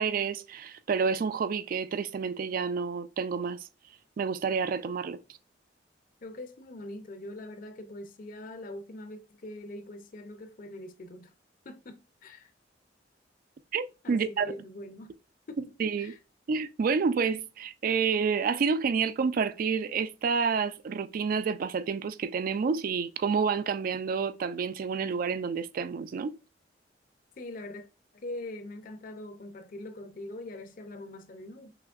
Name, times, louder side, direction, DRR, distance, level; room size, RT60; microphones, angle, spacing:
voice 1, 0.0-3.6 4.2-5.2 13.7-14.5 15.8-16.1 16.5-26.4, right 5 dB, 50° right, 0.3 m, -29 dB
voice 2, 6.2-11.3 11.6-12.5 14.0-15.1 15.5-16.2 27.4-27.9 28.1-31.8, left 1 dB, 50° left, 0.5 m, -43 dB
6.0 x 3.0 x 2.4 m
head